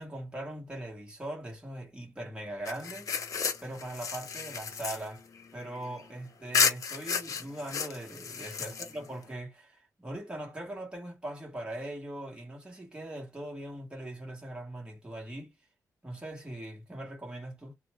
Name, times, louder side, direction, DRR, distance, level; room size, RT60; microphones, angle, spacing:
voice 1, 0.0-3.1 3.6-5.2 5.5-15.5 16.0-17.7, right 1 dB, 15° right, 1.3 m, -40 dB
sound 1, 2.7-6.1 6.5-9.2, left 6 dB, 65° left, 0.7 m, -32 dB
2.8 x 2.1 x 2.9 m
wide cardioid pair, 155°, 6 cm